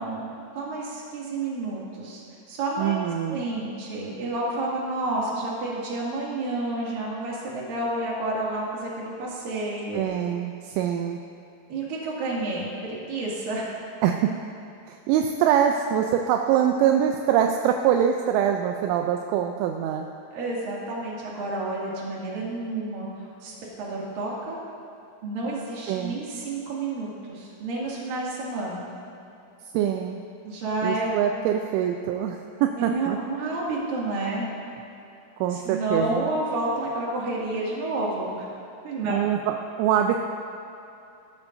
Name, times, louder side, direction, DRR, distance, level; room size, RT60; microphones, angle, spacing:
voice 1, 0.0-2.2 2.5-10.0 11.7-13.6 20.3-24.6 25.2-28.9 30.4-31.1 32.8-34.5 35.5-38.6 38.8-39.3, right 2 dB, 50° right, -5 dB, 3.6 m, -30 dB
voice 2, 2.8-3.4 9.9-11.2 14.0-14.3 14.9-20.1 25.9-26.2 29.7-30.2 30.8-33.2 35.4-36.3 39.1-40.2, right 9 dB, 85° right, 3 dB, 3.0 m, -24 dB
19.0 x 12.5 x 2.7 m, 2.7 s
omnidirectional pair, 5.6 m